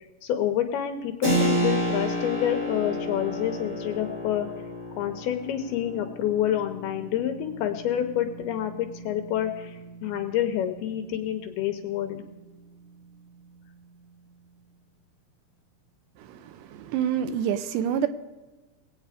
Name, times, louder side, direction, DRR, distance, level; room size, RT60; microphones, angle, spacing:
voice 1, 0.0-4.5 5.0-12.2, left 11 dB, 75° left, 6 dB, 2.5 m, -28 dB
Keyboard (musical), 1.2-11.6, equal, 20° right, 2.4 m, -32 dB
voice 2, 16.2-18.1, right 9 dB, 80° right, 10 dB, 2.8 m, -27 dB
22.0 x 8.7 x 5.0 m, 1.2 s
omnidirectional pair, 5.2 m